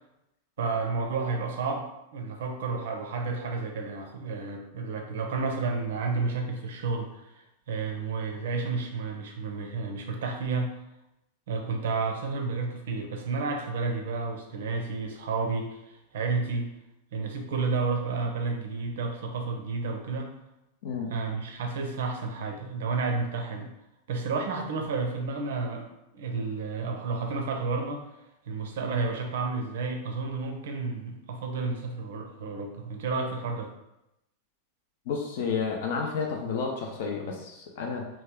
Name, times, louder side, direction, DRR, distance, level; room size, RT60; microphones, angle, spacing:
voice 1, 0.6-1.9 2.1-10.8 11.5-16.7 17.1-20.3 21.1-23.7 24.1-28.1 28.5-33.7, right 4 dB, 60° right, 3 dB, 0.5 m, -31 dB
voice 2, 35.1-38.1, left 5 dB, 55° left, 1 dB, 0.5 m, -31 dB
3.0 x 2.2 x 3.4 m, 0.89 s
figure-of-eight pair, 90°, 0 cm